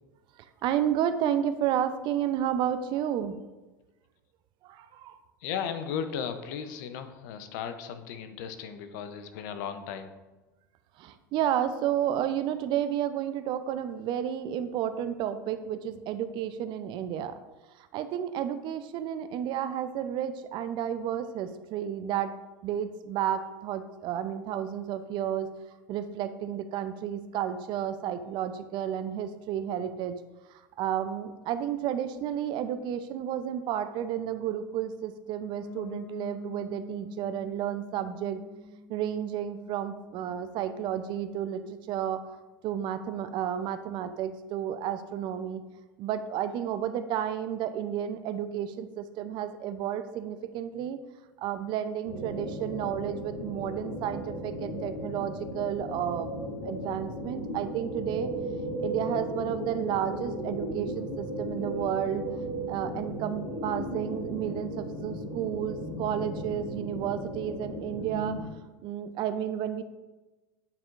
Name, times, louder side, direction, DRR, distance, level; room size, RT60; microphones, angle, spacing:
voice 1, 0.4-3.4 4.6-5.2 11.0-17.4 17.8-22.3 22.6-25.5 25.9-30.2 30.5-38.4 38.9-42.4 42.6-45.6 46.0-51.0 51.4-58.3 58.8-62.2 62.7-68.4 68.8-69.8, right 10 dB, 45° right, 11 dB, 0.5 m, -32 dB
voice 2, 5.4-10.2, left 7 dB, 65° left, 9 dB, 0.6 m, -36 dB
Piano, 35.6-41.3, left 5 dB, 30° left, 1.9 m, -47 dB
sound 1, 52.0-68.4, right 1 dB, 80° left, 2.0 m, -36 dB
8.6 x 4.4 x 2.5 m, 1.1 s
hypercardioid pair, 90°, 11 cm